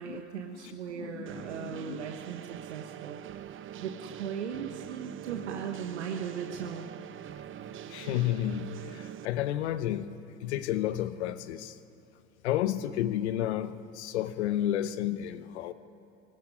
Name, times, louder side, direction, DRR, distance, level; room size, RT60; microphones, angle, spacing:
voice 1, 0.0-3.2 3.8-6.9, right 7 dB, 85° right, 4 dB, 1.2 m, -38 dB
voice 2, 0.6-2.0 7.9-10.1 10.4-11.8 12.4-15.7, left 12 dB, 75° left, 13 dB, 1.0 m, -32 dB
sound 1, 1.3-9.3, right 11 dB, 35° right, 0.8 m, -43 dB
19.0 x 16.5 x 9.9 m, 2.6 s
hypercardioid pair, 75°, 34 cm